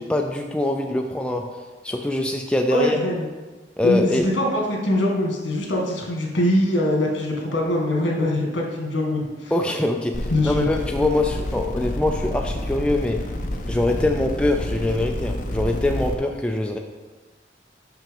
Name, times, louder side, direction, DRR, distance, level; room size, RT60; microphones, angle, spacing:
voice 1, 0.0-1.4 1.8-3.0 3.8-4.3 9.5-13.2 13.7-16.8, left 2 dB, 5° left, 2 dB, 0.3 m, -23 dB
voice 2, 2.7-3.3 3.8-9.5 10.3-10.7, left 1 dB, 75° left, -1 dB, 1.8 m, -23 dB
sound 1, 10.1-16.1, left 1 dB, 40° left, 0.7 m, -29 dB
5.9 x 5.6 x 5.3 m, 1.3 s
head